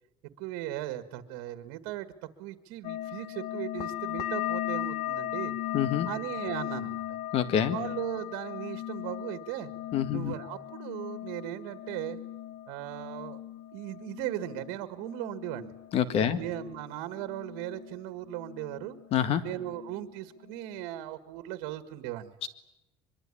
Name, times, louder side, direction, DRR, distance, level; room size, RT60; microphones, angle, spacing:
voice 1, 0.4-2.1 2.4-5.5 6.1-7.2 7.7-9.7 10.1-12.2 12.7-13.4 13.7-15.8 16.2-19.0 19.4-22.3, right 14 dB, 80° right, 10 dB, 1.8 m, -37 dB
sound 1, 2.8-18.0 18.3-19.1 19.4-20.1 20.5-20.9, left 14 dB, 75° left, 1.3 m, -38 dB
voice 2, 5.7-6.1 7.3-7.8 9.9-10.3 15.9-16.4 19.1-19.4 22.4-22.5, left 9 dB, 50° left, 12 dB, 1.8 m, -26 dB
23.5 x 23.0 x 9.9 m, 0.90 s
cardioid pair, 130°, 13 cm